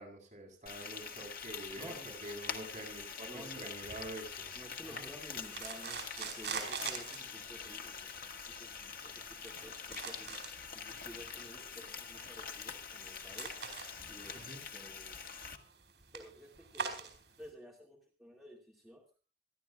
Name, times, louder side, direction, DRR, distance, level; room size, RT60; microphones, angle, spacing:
voice 1, 0.0-4.5 4.8-5.1 14.3-14.6, right 1 dB, 40° right, -1 dB, 8.0 m, -47 dB
Frying (food), 0.7-15.6, left 6 dB, 55° left, 1.6 m, -45 dB
voice 2, 1.8-2.1 3.3-3.7 4.5-15.2 16.1-19.0, equal, ahead, -2 dB, 2.4 m, -53 dB
sound 1, 3.8-17.5, right 6 dB, 75° right, 4.9 m, -46 dB
26.5 x 12.0 x 2.5 m, 0.33 s
head